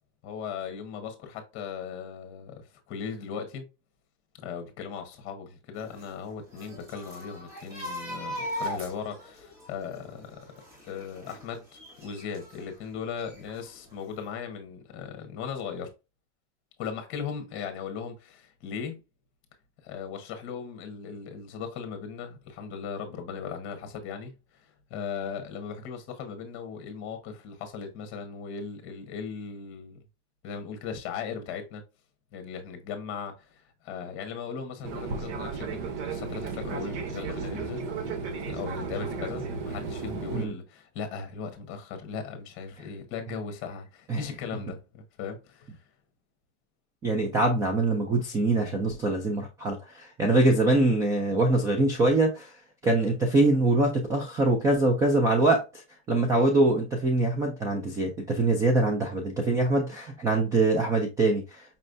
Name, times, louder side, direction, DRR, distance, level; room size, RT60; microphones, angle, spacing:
voice 1, 0.2-3.6 4.4-10.4 10.8-15.9 16.8-19.0 19.8-24.3 24.6-30.0 30.4-31.8 32.3-35.8 36.0-37.9 38.3-45.8, left 6 dB, 35° left, 1.3 m, -38 dB
sound 1, 5.8-12.7 13.1-13.9 14.2-14.3, equal, 25° right, 2.1 m, -40 dB
Fixed-wing aircraft airplane, 34.8-40.5, right 4 dB, 80° right, 1.1 m, -34 dB
voice 2, 47.0-52.5 52.8-55.8 56.1-61.6, right 2 dB, 10° right, 0.3 m, -24 dB
5.4 x 3.1 x 2.6 m
supercardioid pair, 155°, 34 cm